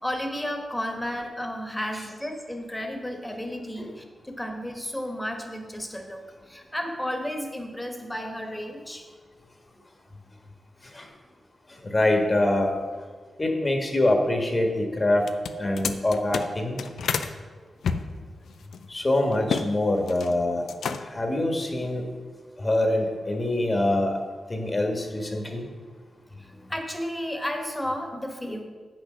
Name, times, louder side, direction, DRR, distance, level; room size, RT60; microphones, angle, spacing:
voice 1, 0.0-9.0 17.2-17.3 26.3-28.6, equal, 10° left, 4 dB, 1.4 m, -33 dB
voice 2, 11.9-12.7 13.4-15.2 15.6-16.8 18.9-20.6 21.1-22.0 22.6-24.2 24.5-25.6, left 1 dB, 30° left, 3 dB, 1.5 m, -24 dB
sound 1, 15.2-17.3 17.8-19.7 20.0-20.4 20.7-21.3, left 6 dB, 90° left, 0.4 m, -30 dB
8.0 x 6.2 x 6.3 m, 1.5 s
cardioid pair, 75°, 0 cm